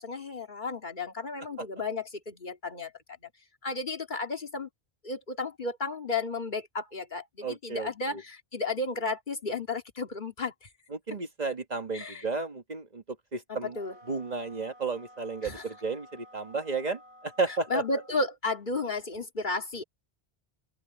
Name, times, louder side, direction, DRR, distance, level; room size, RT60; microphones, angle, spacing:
voice 1, 0.0-2.9 3.6-4.7 5.0-10.7 11.9-12.2 13.5-14.0 15.4-15.6 17.5-19.8, left 3 dB, 45° left, 2.1 m, -33 dB
voice 2, 7.4-8.2 10.9-13.0 13.3-13.8 14.1-17.8, right 4 dB, 40° right, 1.6 m, -33 dB
sound 1, 13.7-18.4, equal, 75° right, 6.5 m, -54 dB
open air
omnidirectional pair, 1.1 m